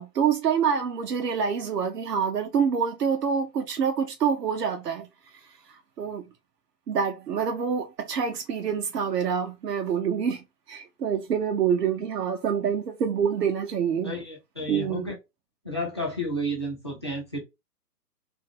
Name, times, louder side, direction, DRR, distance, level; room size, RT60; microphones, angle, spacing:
voice 1, 0.0-5.1 5.3-5.4 5.7-6.2 6.9-14.1 14.7-15.1, right 7 dB, 80° right, 0.7 m, -26 dB
voice 2, 14.0-15.1 15.6-17.4, equal, 20° left, 0.4 m, -31 dB
2.5 x 2.4 x 2.8 m
hypercardioid pair, 135°, 47 cm